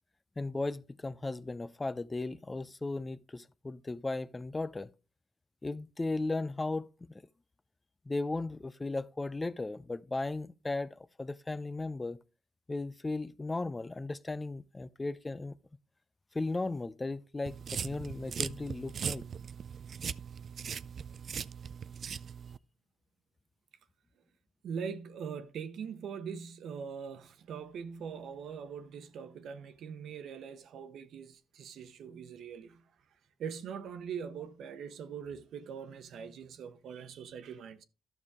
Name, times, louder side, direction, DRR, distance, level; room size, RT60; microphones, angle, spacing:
voice 1, 0.4-4.9 5.6-7.2 8.1-12.2 12.7-15.6 16.3-19.3, left 2 dB, 20° left, 0.4 m, -36 dB
sound 1, 17.5-22.6, right 7 dB, 50° right, 0.4 m, -39 dB
voice 2, 24.6-32.8 33.4-37.8, right 7 dB, 70° right, 1.1 m, -42 dB
12.0 x 6.4 x 3.6 m
cardioid pair, 90°, 0 cm